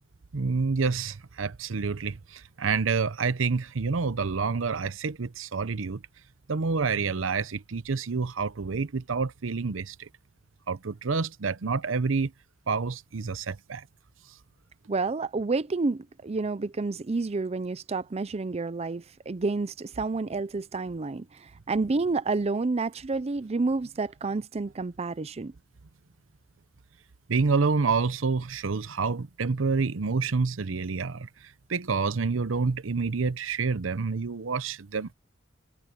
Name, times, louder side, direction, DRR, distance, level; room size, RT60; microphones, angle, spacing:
voice 1, 0.3-6.0 6.5-10.1 10.7-12.3 12.7-13.9 27.3-35.1, right 4 dB, 80° right, 0.7 m, -28 dB
voice 2, 14.9-25.5, right 3 dB, 30° right, 0.5 m, -29 dB
head